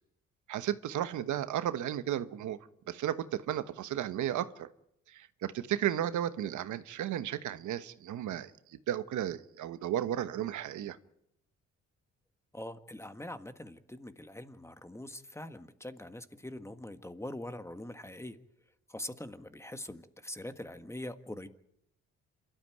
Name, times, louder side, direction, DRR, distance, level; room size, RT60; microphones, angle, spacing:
voice 1, 0.5-2.6 2.9-4.7 5.1-8.5 8.9-11.0, right 11 dB, 75° right, 1.2 m, -34 dB
voice 2, 12.5-18.4 18.9-21.5, left 1 dB, 10° left, 1.5 m, -43 dB
27.0 x 13.0 x 9.2 m
cardioid pair, 90°, 30 cm